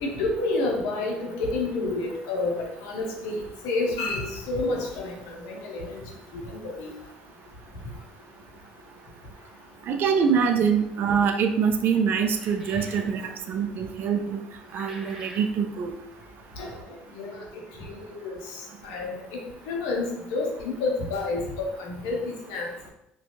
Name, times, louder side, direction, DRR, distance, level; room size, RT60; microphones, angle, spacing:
voice 1, 0.0-5.9 6.5-6.9 16.6-16.7 17.2-17.4 17.9-18.0 18.2-18.4 18.8-19.4 19.7-22.2 22.5-22.7, left 3 dB, 80° left, 0 dB, 0.6 m, -29 dB
voice 2, 9.9-14.4 14.7-15.9, right 6 dB, 55° right, 6 dB, 0.3 m, -24 dB
sound 1, 12.3-13.1 14.6-15.5, equal, 15° right, 0.9 m, -45 dB
2.5 x 2.2 x 2.8 m, 0.81 s
hypercardioid pair, 70°, 4 cm